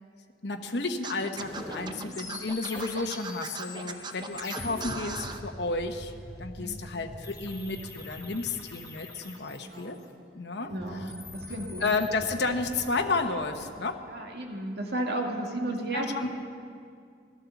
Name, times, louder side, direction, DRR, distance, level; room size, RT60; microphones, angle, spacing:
voice 1, 0.4-6.1 6.4-10.0 10.3-10.7 11.8-14.0 15.9-16.3, left 3 dB, 70° left, 4 dB, 1.1 m, -32 dB
Scratching (performance technique), 1.0-5.4, right 4 dB, 25° right, 0.7 m, -38 dB
sound 1, 1.4-1.9 5.0-9.2 10.6-13.7, equal, ahead, 2.8 m, -45 dB
sound 2, 2.1-4.9 7.2-10.0 10.9-12.1, left 3 dB, 20° left, 1.4 m, -43 dB
voice 2, 9.6-9.9 10.6-11.8 14.1-16.3, right 1 dB, 65° right, 1 dB, 2.0 m, -34 dB
16.0 x 12.5 x 7.1 m, 2.3 s
head